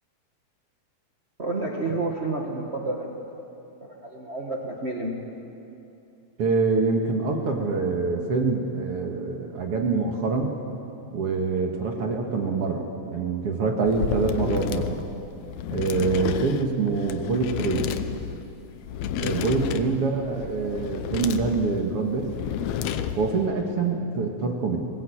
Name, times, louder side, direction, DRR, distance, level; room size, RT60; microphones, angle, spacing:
voice 1, 1.4-3.2 3.8-5.2 19.5-19.8, right 2 dB, 75° right, -1 dB, 0.6 m, -30 dB
voice 2, 6.4-10.6 11.1-15.0 15.7-17.9 19.2-22.3 23.2-24.8, right 4 dB, 50° right, 2 dB, 2.2 m, -25 dB
sound 1, 13.8-23.5, left 9 dB, 75° left, 1.7 m, -32 dB
21.0 x 18.5 x 8.7 m, 2.8 s
omnidirectional pair, 4.0 m